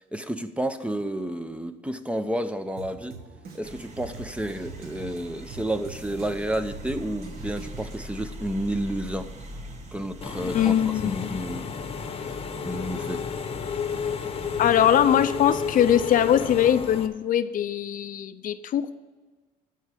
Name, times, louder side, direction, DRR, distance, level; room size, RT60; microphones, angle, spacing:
voice 1, 0.0-3.1 3.5-9.3 9.9-11.7 12.1-13.2, right 1 dB, 5° right, 9 dB, 0.6 m, -31 dB
Drum kit, 2.8-8.2, right 4 dB, 65° right, 1.7 m, -44 dB
sound 1, 3.6-14.8, right 1 dB, 40° right, 1.5 m, -43 dB
Engine / Mechanisms, 10.2-17.1, left 6 dB, 35° left, 0.9 m, -32 dB
voice 2, 10.4-11.4 14.6-19.0, left 10 dB, 55° left, 11 dB, 0.6 m, -22 dB
12.5 x 4.6 x 8.5 m, 1.3 s
cardioid pair, 110°, 17 cm